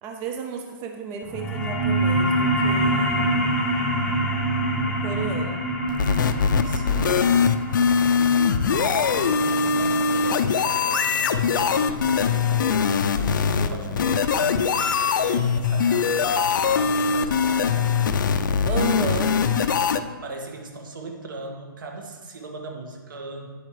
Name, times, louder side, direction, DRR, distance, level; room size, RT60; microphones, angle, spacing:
voice 1, 0.0-3.6 4.8-5.6 13.5-14.0 18.6-19.3, right 5 dB, 15° right, 3 dB, 0.4 m, -33 dB
sound 1, 1.2-12.3, right 1 dB, 5° left, 0.9 m, -26 dB
sound 2, 5.9-20.0, left 6 dB, 60° left, 0.5 m, -22 dB
voice 2, 6.7-7.2 7.9-13.0 13.4-18.0 20.2-23.5, right 2 dB, 65° right, 2 dB, 1.9 m, -38 dB
9.5 x 7.9 x 3.3 m, 1.4 s
hypercardioid pair, 155°, 12 cm